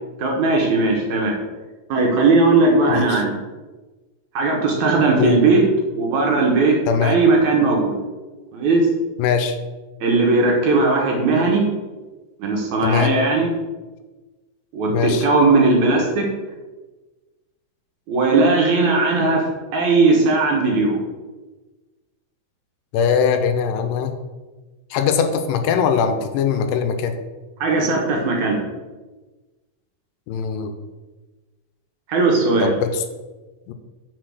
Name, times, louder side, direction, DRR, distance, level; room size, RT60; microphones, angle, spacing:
voice 1, 0.2-1.3 1.9-3.3 4.3-5.6 5.9-8.0 8.5-8.9 10.0-11.7 12.4-13.5 14.7-16.3 18.1-19.5 19.7-21.0 27.6-28.6 32.1-32.7, right 3 dB, 65° right, 0 dB, 2.2 m, -18 dB
voice 2, 2.9-3.2 5.2-5.4 6.9-7.2 9.2-9.6 12.8-13.1 14.9-15.3 22.9-24.1 24.9-27.1 30.3-30.7 32.6-33.0 33.7-33.8, left 7 dB, 85° left, 7 dB, 2.3 m, -21 dB
6.7 x 4.0 x 6.3 m, 1.2 s
omnidirectional pair, 4.0 m